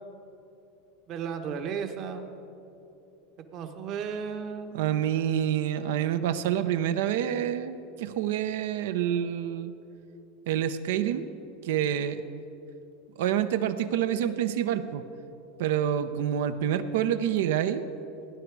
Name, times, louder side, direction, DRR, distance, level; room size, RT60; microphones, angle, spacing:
voice 1, 1.1-2.3 3.5-4.8, right 6 dB, 50° right, 7 dB, 1.1 m, -34 dB
voice 2, 4.7-9.7 10.5-11.3 11.6-12.2 13.2-15.0 15.6-17.9, right 10 dB, 75° right, 11 dB, 0.7 m, -27 dB
18.0 x 10.0 x 4.7 m, 2.9 s
hypercardioid pair, 105°, 0 cm